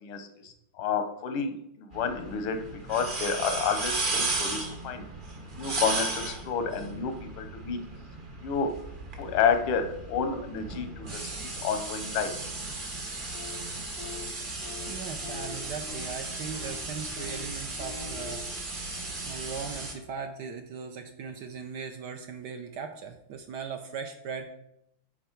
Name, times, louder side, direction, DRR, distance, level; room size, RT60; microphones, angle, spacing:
voice 1, 0.0-2.6 2.9-5.0 5.6-7.8 8.4-8.8 9.2-12.3, left 6 dB, 90° left, 7 dB, 1.7 m, -30 dB
sound 1, 1.9-19.9, right 3 dB, 35° right, 0.9 m, -35 dB
sound 2, 13.3-13.7 14.0-14.3 14.6-14.9 15.2-16.2 16.5-16.8 17.2-17.5 17.8-18.4, left 6 dB, 45° left, 0.7 m, -44 dB
voice 2, 14.9-18.5 19.3-24.5, right 6 dB, 70° right, 6 dB, 1.1 m, -39 dB
9.1 x 3.9 x 4.4 m, 0.78 s
omnidirectional pair, 2.3 m